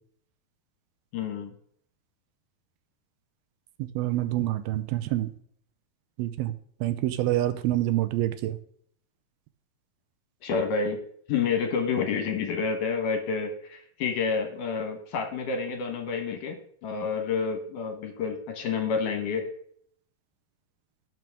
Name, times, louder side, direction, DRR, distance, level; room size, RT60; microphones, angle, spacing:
voice 1, 1.1-1.5 10.4-11.0 11.3-16.6 16.8-19.5, left 5 dB, 65° left, 5 dB, 2.4 m, -29 dB
voice 2, 4.0-5.3 6.2-6.5 6.8-8.6, right 14 dB, 85° right, 10 dB, 2.5 m, -26 dB
18.0 x 6.2 x 3.5 m, 0.64 s
omnidirectional pair, 4.5 m